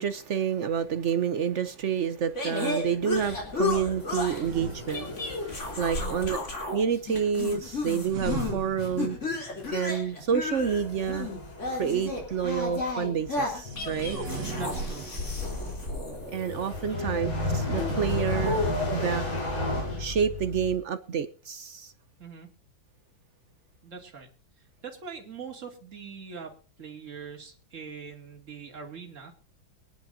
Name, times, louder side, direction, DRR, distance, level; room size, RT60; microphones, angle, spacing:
voice 1, 0.0-5.1 5.5-6.4 6.7-9.2 9.7-11.3 11.8-14.2 16.3-19.2 20.0-21.9, right 7 dB, 75° right, 0.6 m, -29 dB
sound 1, 0.8-1.6 3.5-5.8 8.0-10.2 13.5-18.2, right 4 dB, 60° right, 2.2 m, -41 dB
sound 2, 2.4-4.5 4.9-6.8 7.1-8.6 9.0-16.9 17.7-19.1, left 3 dB, 35° left, 3.7 m, -33 dB
sound 3, 3.1-6.7 7.1-7.3 7.6-7.9 8.3-8.4 8.8-9.1 9.6-9.8 10.1-20.8, left 2 dB, 80° left, 5.1 m, -35 dB
voice 2, 6.0-6.3 14.6-15.0 16.9-17.2 22.2-22.5 23.8-24.3 24.8-29.3, right 5 dB, 35° right, 2.8 m, -42 dB
24.0 x 10.5 x 2.7 m
omnidirectional pair, 2.2 m